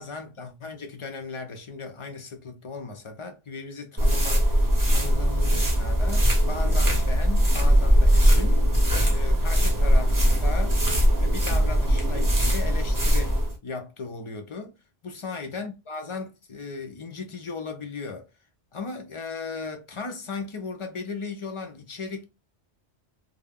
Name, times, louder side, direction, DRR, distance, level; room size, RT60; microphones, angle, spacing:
voice 1, 0.0-8.7 9.1-10.8 11.2-14.8 15.0-18.3 18.7-22.2, left 4 dB, 50° left, 0.3 m, -37 dB
sound 1, 4.0-13.5, equal, 25° right, 0.6 m, -20 dB
2.3 x 2.0 x 3.4 m
omnidirectional pair, 1.1 m